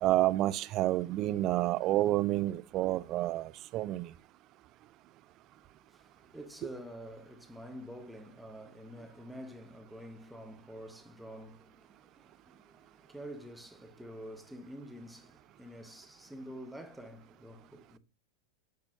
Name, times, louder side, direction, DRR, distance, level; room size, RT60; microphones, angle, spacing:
voice 1, 0.0-4.1, right 15 dB, 35° right, 0.3 m, -29 dB
voice 2, 5.7-18.0, equal, ahead, 0.9 m, -48 dB
9.4 x 4.4 x 2.6 m
figure-of-eight pair, 90°, 0 cm